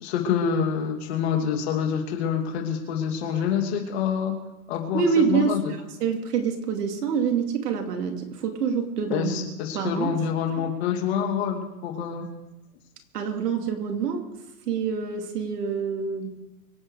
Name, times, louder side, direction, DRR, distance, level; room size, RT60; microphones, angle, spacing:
voice 1, 0.0-4.4 4.7-5.0 5.3-5.7 9.1-12.3, left 7 dB, 40° left, 3 dB, 2.8 m, -26 dB
voice 2, 4.9-9.3 9.6-10.1 13.1-14.3 14.7-16.4, right 6 dB, 75° right, 3 dB, 2.9 m, -26 dB
24.5 x 8.8 x 4.9 m, 1.0 s
hypercardioid pair, 165°, 47 cm